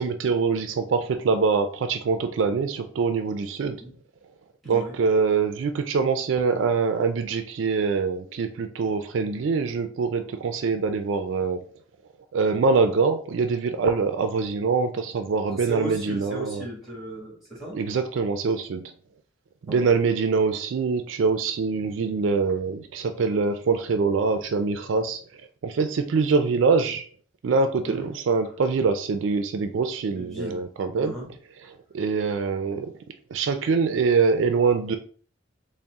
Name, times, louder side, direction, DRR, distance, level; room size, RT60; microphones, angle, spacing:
voice 1, 0.0-3.8 4.7-11.6 12.3-16.6 17.7-18.8 19.6-25.2 25.6-27.1 27.4-31.2 31.6-32.9 33.3-35.0, right 4 dB, 70° right, 8 dB, 0.4 m, -24 dB
voice 2, 4.6-4.9 15.5-17.8 19.7-20.0 27.9-28.1 30.1-30.6 31.0-31.3, right 2 dB, ahead, -5 dB, 1.6 m, -36 dB
4.0 x 2.0 x 3.5 m, 0.44 s
head